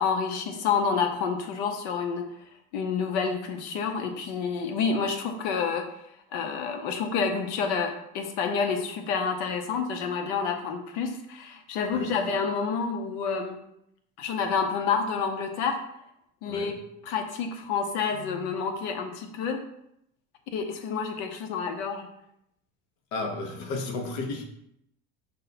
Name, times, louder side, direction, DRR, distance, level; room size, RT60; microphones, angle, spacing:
voice 1, 0.0-2.3 2.7-5.9 6.3-13.6 14.2-15.8 16.4-19.6 20.5-22.1, left 5 dB, 90° left, 5 dB, 0.8 m, -29 dB
voice 2, 23.1-24.4, left 3 dB, 65° left, 4 dB, 0.8 m, -33 dB
5.3 x 2.2 x 4.0 m, 0.76 s
cardioid pair, 175°, 33 cm